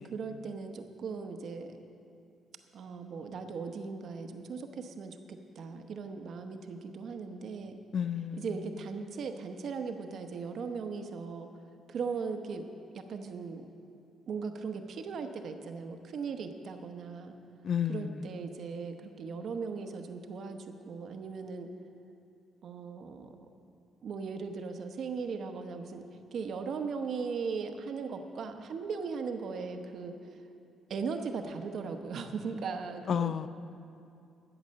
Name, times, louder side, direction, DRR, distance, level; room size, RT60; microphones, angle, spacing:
voice 1, 0.0-1.8 2.7-7.8 8.3-11.5 11.9-12.6 12.9-13.6 14.3-17.3 17.9-20.6 20.8-21.7 22.6-23.3 24.0-26.0 26.3-30.2 30.9-33.3, right 5 dB, 65° right, 6 dB, 0.9 m, -38 dB
voice 2, 7.9-8.5 17.6-18.1 33.1-33.5, left 8 dB, 55° left, 14 dB, 0.4 m, -31 dB
13.0 x 7.9 x 6.4 m, 2.6 s
cardioid pair, 90°, 0 cm